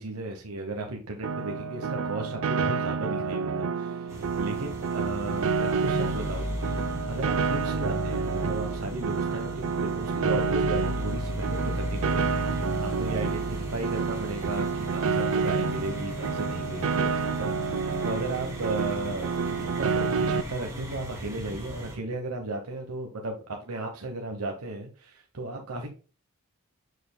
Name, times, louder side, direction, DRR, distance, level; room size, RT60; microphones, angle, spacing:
voice 1, 0.0-23.4 23.6-25.9, right 2 dB, 90° right, 2 dB, 1.0 m, -35 dB
Piano, 1.2-20.4, right 5 dB, 70° right, 0.4 m, -29 dB
sound 1, 4.1-22.0, equal, 15° right, 2.5 m, -36 dB
6.9 x 6.3 x 2.2 m, 0.35 s
head